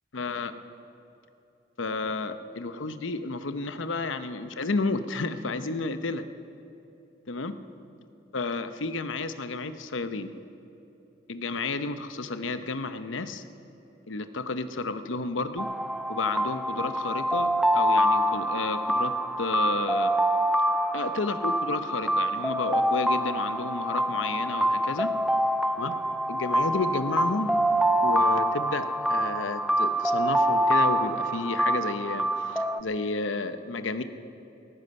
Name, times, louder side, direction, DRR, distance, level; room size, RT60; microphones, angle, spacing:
voice 1, 0.1-0.5 1.8-6.3 7.3-7.6 8.3-10.3 11.3-13.4 14.1-15.7 16.1-20.1 20.9-25.1 25.7-26.0 26.3-27.5 28.0-34.0, left 3 dB, 90° left, 10 dB, 0.8 m, -31 dB
sound 1, 15.6-32.8, right 1 dB, ahead, 0.3 m, -26 dB
17.5 x 14.5 x 5.5 m, 3.0 s
head